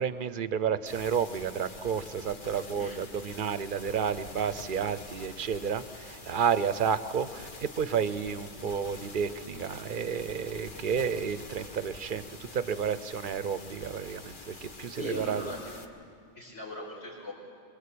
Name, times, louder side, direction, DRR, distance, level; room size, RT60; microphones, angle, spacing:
voice 1, 0.0-15.5, right 7 dB, 50° right, 13 dB, 0.9 m, -31 dB
sound 1, 0.9-15.9, left 2 dB, 45° left, 1.5 m, -46 dB
voice 2, 15.0-15.6 16.3-17.3, left 2 dB, 85° left, -9 dB, 4.7 m, -39 dB
25.5 x 21.5 x 8.6 m, 2.3 s
omnidirectional pair, 1.2 m